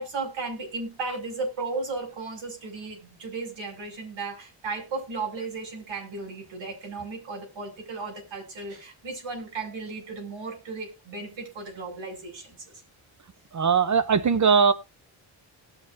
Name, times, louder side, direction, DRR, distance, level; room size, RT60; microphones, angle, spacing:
voice 1, 0.0-12.7, right 3 dB, 75° right, 6.5 m, -35 dB
voice 2, 13.5-14.7, right 6 dB, 40° right, 0.8 m, -20 dB
19.0 x 6.4 x 2.7 m
cardioid pair, 95°, 46 cm